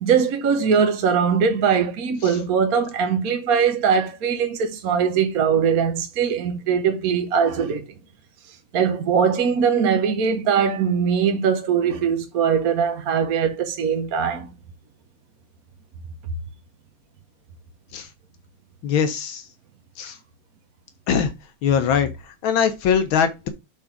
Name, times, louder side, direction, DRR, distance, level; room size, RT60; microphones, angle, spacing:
voice 1, 0.0-7.8 8.7-14.5, right 7 dB, 55° right, 1.1 m, -21 dB
voice 2, 18.8-19.4 20.0-20.2 21.1-21.3 21.6-23.5, left 7 dB, 80° left, 1.7 m, -22 dB
7.7 x 3.7 x 5.9 m
omnidirectional pair, 2.2 m